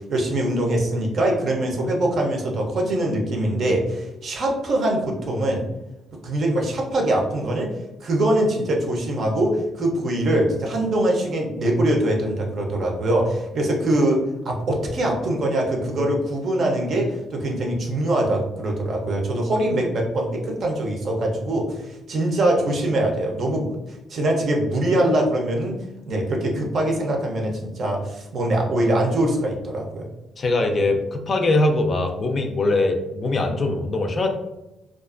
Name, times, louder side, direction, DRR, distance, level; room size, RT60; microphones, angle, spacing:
voice 1, 0.1-5.6 6.2-7.7 8.0-25.8 26.1-30.1, right 1 dB, 60° right, 0 dB, 0.6 m, -23 dB
voice 2, 30.4-34.3, left 2 dB, 40° left, 4 dB, 0.4 m, -22 dB
2.4 x 2.3 x 2.4 m, 0.96 s
cardioid pair, 90°, 0 cm